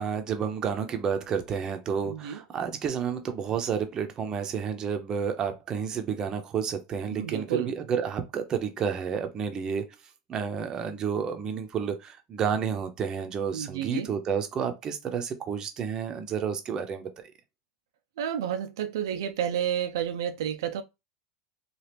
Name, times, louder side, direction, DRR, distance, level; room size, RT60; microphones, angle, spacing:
voice 1, 0.0-9.8 10.3-17.1, right 7 dB, 30° right, 0.6 m, -30 dB
voice 2, 2.1-2.4 7.1-7.7 13.5-14.1 18.2-20.8, right 9 dB, 80° right, 0.3 m, -30 dB
2.9 x 2.4 x 3.3 m
supercardioid pair, 125°, 2 cm